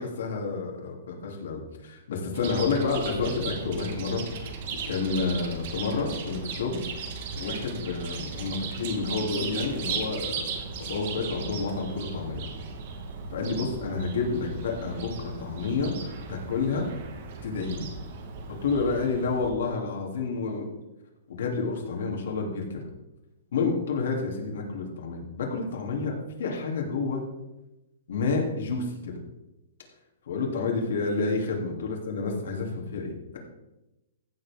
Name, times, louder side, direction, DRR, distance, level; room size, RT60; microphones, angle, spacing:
voice 1, 0.0-4.2 4.9-6.8 7.4-12.5 13.3-15.9 16.3-16.9 17.4-17.9 18.6-20.6 21.3-22.9 23.5-27.2 28.1-29.1 30.3-33.4, left 4 dB, 60° left, 0 dB, 2.8 m, -29 dB
Chirp tweet, 2.3-19.5, right 5 dB, 40° right, 1.3 m, -37 dB
15.0 x 7.2 x 3.6 m, 0.97 s
hypercardioid pair, 180°, 0 cm